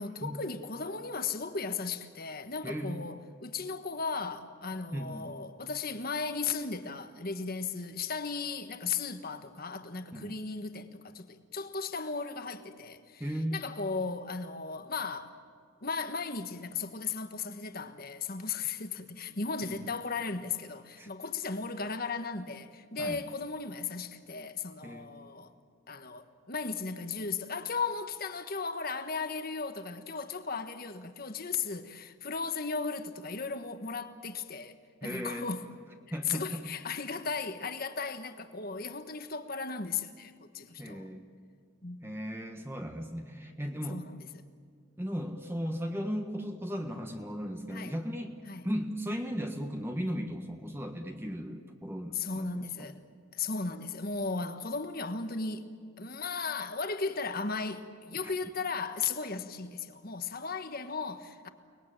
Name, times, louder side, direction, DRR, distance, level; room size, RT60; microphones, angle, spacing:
voice 1, 0.0-13.2 13.5-15.4 15.8-25.5 25.9-35.6 36.1-41.1 41.8-42.0 43.9-44.4 47.7-47.9 48.5-48.7 52.1-53.0 53.3-61.5, left 4 dB, 45° left, 1.4 m, -36 dB
voice 2, 2.6-3.0 4.9-5.3 10.1-10.4 13.2-13.6 19.6-19.8 21.0-21.1 23.0-23.2 24.8-25.1 35.0-35.5 36.1-36.6 40.8-41.2 42.0-44.0 45.0-48.4 48.6-52.9 58.2-58.3, equal, 10° right, 1.4 m, -36 dB
29.5 x 20.5 x 9.0 m
head